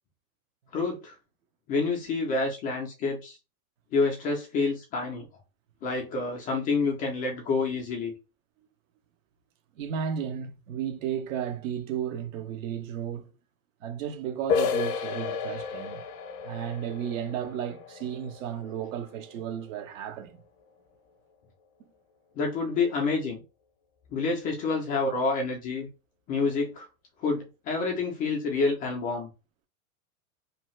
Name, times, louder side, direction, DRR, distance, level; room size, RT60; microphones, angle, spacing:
voice 1, 0.7-1.2 1.7-3.4 3.9-5.3 5.8-8.1 22.4-23.4 24.1-25.9 26.3-26.9 27.2-29.3, left 4 dB, 20° left, 0.3 m, -28 dB
voice 2, 9.8-13.3 13.8-16.0 16.4-20.4, right 8 dB, 60° right, 0.7 m, -34 dB
sound 1, 14.5-20.0, left 6 dB, 55° left, 0.6 m, -33 dB
2.8 x 2.2 x 3.1 m
hypercardioid pair, 115°, 44 cm